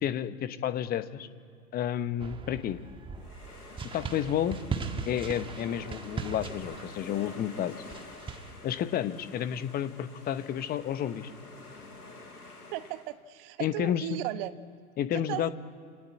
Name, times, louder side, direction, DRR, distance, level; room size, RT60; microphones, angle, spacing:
voice 1, 0.0-1.3 1.7-2.8 3.9-4.6 5.1-7.7 8.6-11.3 13.6-14.2 15.0-15.5, left 10 dB, 20° left, 13 dB, 1.0 m, -31 dB
sound 1, 2.2-8.5, right 5 dB, 10° right, 1.6 m, -39 dB
sound 2, 3.2-13.1, left 3 dB, 75° left, 6.9 m, -48 dB
voice 2, 12.7-14.5 15.1-15.5, right 15 dB, 40° right, 12 dB, 1.3 m, -36 dB
28.5 x 22.0 x 8.5 m, 2.5 s
figure-of-eight pair, 100°, 45 cm